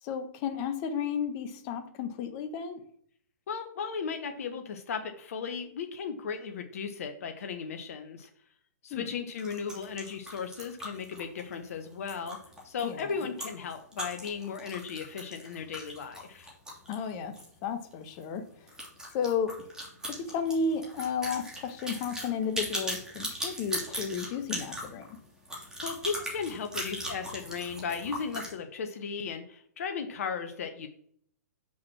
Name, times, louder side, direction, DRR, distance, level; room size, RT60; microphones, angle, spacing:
voice 1, 0.0-2.8 8.9-9.1 12.8-13.0 16.9-18.5 19.1-19.7 20.1-25.2, left 6 dB, 35° left, 9 dB, 1.2 m, -33 dB
voice 2, 3.5-8.3 8.8-12.4 12.6-16.5 25.8-30.9, left 6 dB, 55° left, 7 dB, 1.0 m, -36 dB
sound 1, 9.3-17.5 17.8-17.9 18.2-18.3 18.7-28.5, right 1 dB, 5° right, 3.1 m, -39 dB
6.1 x 6.0 x 6.0 m, 0.64 s
figure-of-eight pair, 120°, 9 cm